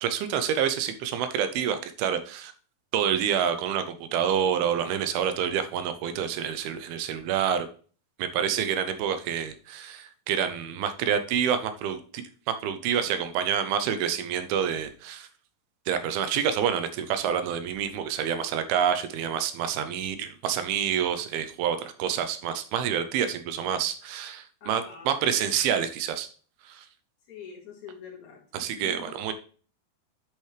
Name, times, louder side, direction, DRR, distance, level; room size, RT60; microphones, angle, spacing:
voice 1, 0.0-2.5 2.9-7.7 8.2-15.3 15.9-26.3 26.7-26.9 28.5-29.3, right 8 dB, 85° right, 9 dB, 2.6 m, -28 dB
voice 2, 24.6-25.1 27.3-29.1, left 7 dB, 55° left, -2 dB, 2.7 m, -45 dB
10.0 x 6.3 x 3.3 m, 0.42 s
omnidirectional pair, 4.3 m